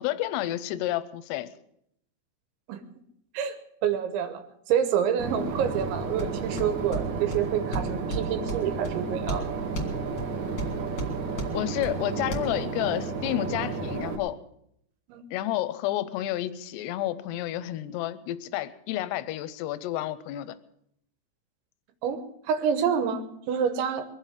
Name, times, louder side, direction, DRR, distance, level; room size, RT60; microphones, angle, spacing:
voice 1, 0.0-1.5 11.5-14.4 15.3-20.6, left 14 dB, 80° left, 13 dB, 2.5 m, -30 dB
voice 2, 3.8-4.4 4.7-9.5 15.1-15.2 22.0-24.1, right 8 dB, 80° right, 9 dB, 3.4 m, -27 dB
Boat Water vehicle / Engine, 5.2-14.2, right 4 dB, 60° right, 2.0 m, -32 dB
sound 1, 5.8-12.4, right 2 dB, 45° left, 1.4 m, -36 dB
22.5 x 7.5 x 7.2 m, 0.74 s
omnidirectional pair, 5.3 m